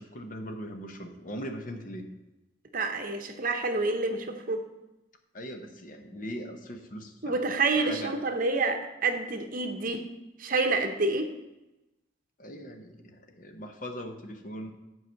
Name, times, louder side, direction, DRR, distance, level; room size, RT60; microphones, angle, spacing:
voice 1, 0.0-2.1 5.3-7.5 7.8-8.1 12.4-14.7, equal, 45° left, 5 dB, 0.9 m, -40 dB
voice 2, 2.7-4.6 7.2-10.0 10.4-11.3, right 3 dB, 45° right, 6 dB, 0.8 m, -28 dB
8.0 x 4.8 x 7.0 m, 0.99 s
head